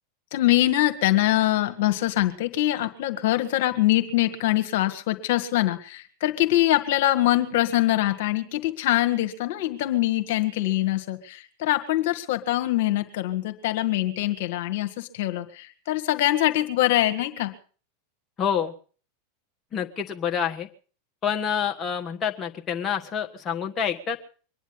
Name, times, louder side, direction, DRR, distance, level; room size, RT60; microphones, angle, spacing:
voice 1, 0.3-17.5, left 15 dB, 55° left, 8 dB, 1.7 m, -23 dB
voice 2, 18.4-18.7 19.7-20.7 21.2-24.2, left 8 dB, 30° left, 3 dB, 1.5 m, -27 dB
24.0 x 10.0 x 5.6 m, 0.41 s
figure-of-eight pair, 90°, 0 cm